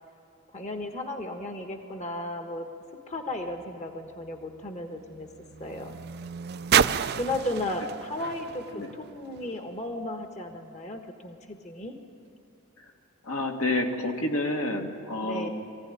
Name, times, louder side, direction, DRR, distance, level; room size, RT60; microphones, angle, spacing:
voice 1, 0.5-2.7 3.1-5.3 5.6-6.0 7.1-12.0 15.2-15.5, left 1 dB, 35° left, 4 dB, 1.2 m, -34 dB
sound 1, 3.2-9.7 10.5-10.6, right 8 dB, 50° right, 0.5 m, -31 dB
voice 2, 13.2-15.5, left 2 dB, 75° left, 2 dB, 2.1 m, -29 dB
23.0 x 15.5 x 9.9 m, 2.5 s
head